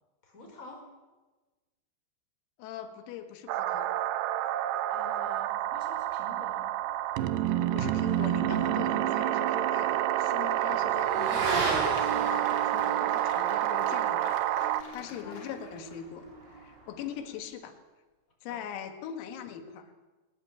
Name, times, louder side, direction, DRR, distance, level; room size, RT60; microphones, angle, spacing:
voice 1, 0.2-0.9 4.9-6.7 10.6-11.4 14.8-15.4 17.1-17.4 18.5-18.7, left 1 dB, 15° left, 1 dB, 4.8 m, -49 dB
voice 2, 2.6-4.0 7.5-11.5 11.8-16.3 16.6-17.7 18.4-19.9, left 9 dB, 90° left, 7 dB, 4.5 m, -41 dB
sound 1, 3.5-14.8, right 13 dB, 80° right, 2.5 m, -28 dB
Motorcycle / Accelerating revving vroom, 8.5-17.3, right 3 dB, 50° right, 6.7 m, -38 dB
Applause, 11.0-16.3, left 3 dB, 35° left, 2.4 m, -47 dB
21.0 x 19.5 x 8.9 m, 1.2 s
omnidirectional pair, 6.0 m